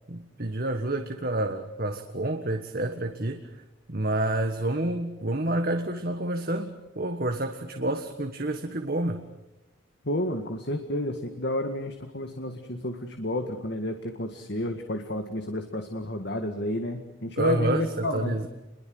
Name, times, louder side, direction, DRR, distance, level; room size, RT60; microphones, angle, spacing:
voice 1, 0.1-3.4 3.9-9.2 17.4-18.5, right 1 dB, 45° right, 6 dB, 1.6 m, -29 dB
voice 2, 10.1-18.4, left 1 dB, 50° left, 6 dB, 2.0 m, -31 dB
29.0 x 22.5 x 8.0 m, 0.95 s
head